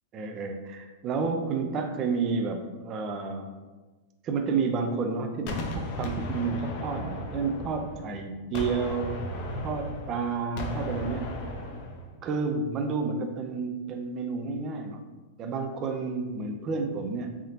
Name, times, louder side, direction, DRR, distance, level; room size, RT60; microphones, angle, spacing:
voice 1, 0.1-3.5 4.2-9.2 9.6-11.3 12.2-15.0 15.4-17.3, right 4 dB, 30° right, 5 dB, 0.4 m, -30 dB
Gunshot gunfire, 5.5-8.2 8.5-12.1, left 1 dB, 45° left, 0.5 m, -35 dB
3.7 x 3.5 x 2.8 m, 1.3 s
supercardioid pair, 150°, 0 cm